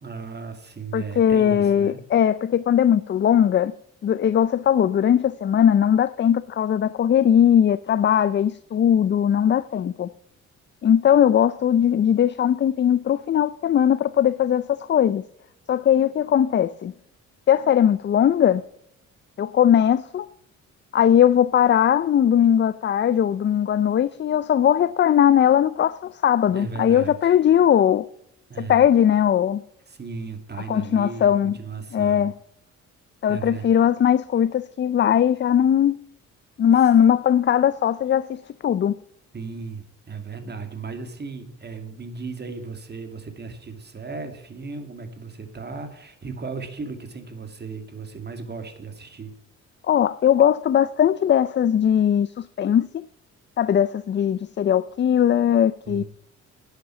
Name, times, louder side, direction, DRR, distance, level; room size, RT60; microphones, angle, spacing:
voice 1, 0.0-2.0 26.5-27.3 28.5-28.9 29.9-32.3 33.3-33.7 36.7-36.8 39.3-49.3 55.9-56.0, right 4 dB, 35° right, 2.5 m, -36 dB
voice 2, 0.9-3.7 4.0-10.1 10.8-15.2 15.7-16.9 17.5-18.6 19.4-20.3 20.9-28.1 28.6-29.6 30.7-31.6 31.9-32.3 33.2-36.0 36.6-39.0 49.8-53.1 53.6-56.0, left 9 dB, 40° left, 0.5 m, -19 dB
11.0 x 8.1 x 7.4 m
cardioid pair, 90°, 30 cm